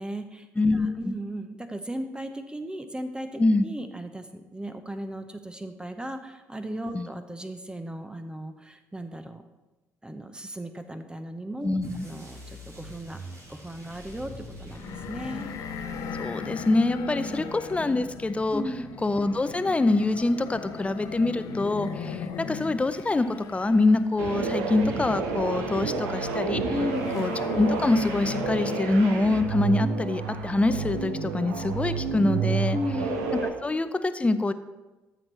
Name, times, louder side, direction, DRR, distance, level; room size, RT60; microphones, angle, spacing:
voice 1, 0.0-0.5 0.7-9.4 10.0-11.8 12.0-13.2 13.5-14.3 14.6-15.5 16.9-17.4 18.5-18.9 21.5-21.7 26.7-27.2 32.7-33.2, equal, 10° right, 8 dB, 0.8 m, -36 dB
voice 2, 0.6-1.1 3.4-3.7 6.9-7.1 11.6-12.1 16.2-18.6 19.0-26.6 27.1-32.8 33.6-34.5, left 2 dB, 15° left, 12 dB, 0.6 m, -25 dB
sound 1, 11.8-16.6, equal, 45° right, 2.9 m, -45 dB
sound 2, 14.7-29.2, left 6 dB, 55° left, 0.8 m, -38 dB
sound 3, 24.2-33.5, right 4 dB, 75° right, 0.8 m, -30 dB
13.0 x 6.0 x 3.3 m, 1.1 s
figure-of-eight pair, 45°, 7 cm